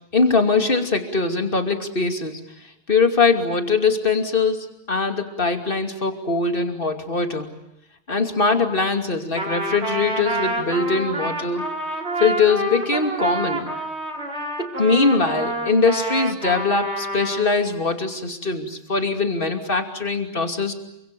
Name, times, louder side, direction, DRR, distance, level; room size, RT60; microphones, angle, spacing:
voice 1, 0.1-2.4 2.9-7.5 8.1-11.7 12.2-13.7 14.6-20.7, left 4 dB, 50° left, 6 dB, 3.0 m, -22 dB
Trumpet, 9.4-17.5, right 1 dB, 65° right, 4.1 m, -28 dB
28.5 x 25.0 x 7.0 m, 0.85 s
omnidirectional pair, 1.2 m